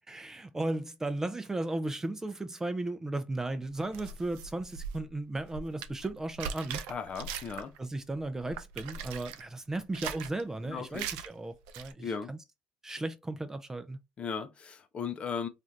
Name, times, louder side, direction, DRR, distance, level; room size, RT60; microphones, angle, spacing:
voice 1, 0.1-6.8 7.8-12.4 12.8-14.0, right 2 dB, 15° right, 0.5 m, -35 dB
sound 1, 3.7-7.8 8.1-9.4 9.8-10.4 10.9-11.3 11.6-11.9, right 7 dB, 85° right, 0.3 m, -40 dB
voice 2, 6.9-7.7 10.6-11.0 12.0-12.3 14.2-15.5, left 6 dB, 45° left, 0.6 m, -36 dB
3.1 x 2.5 x 2.6 m
supercardioid pair, 75°, 3 cm